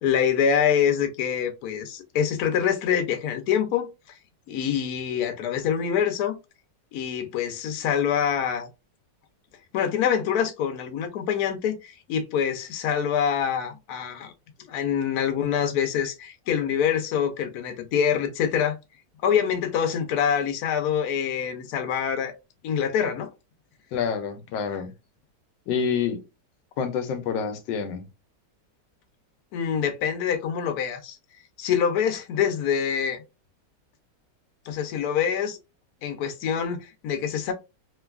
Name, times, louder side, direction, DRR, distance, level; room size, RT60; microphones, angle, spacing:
voice 1, 0.0-3.9 4.5-6.3 6.9-8.7 9.7-14.3 14.7-18.8 19.2-22.3 22.6-23.3 29.5-31.2 31.6-33.2 34.7-35.6 36.0-37.5, left 8 dB, 70° left, 1.1 m, -25 dB
voice 2, 23.9-24.9 25.7-26.2 26.8-28.1, left 6 dB, 90° left, 1.3 m, -27 dB
3.2 x 2.2 x 2.3 m
omnidirectional pair, 1.9 m